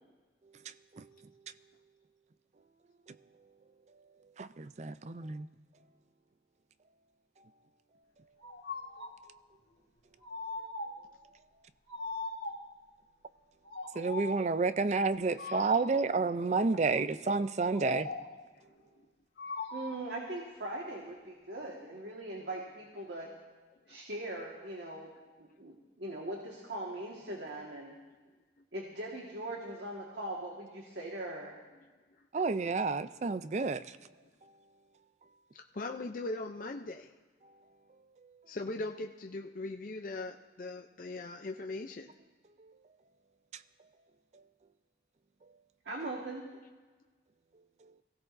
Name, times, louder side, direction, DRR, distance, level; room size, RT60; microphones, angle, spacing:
voice 1, 0.7-1.1 4.4-5.5 13.9-18.1 32.3-34.0 42.6-42.7, right 4 dB, 40° right, 14 dB, 0.4 m, -30 dB
sound 1, 8.4-9.2 10.2-11.1 11.9-12.8 13.6-14.5 15.4-16.1 17.7-18.4 19.4-20.2, left 3 dB, 75° left, 1.9 m, -41 dB
voice 2, 19.7-23.3 23.9-25.1 25.4-28.0 28.7-31.5 45.8-46.4, right 1 dB, 80° right, -2 dB, 1.7 m, -40 dB
voice 3, 35.5-37.1 38.5-42.1, left 2 dB, 50° left, 3 dB, 0.5 m, -40 dB
22.5 x 16.0 x 2.6 m, 1.3 s
head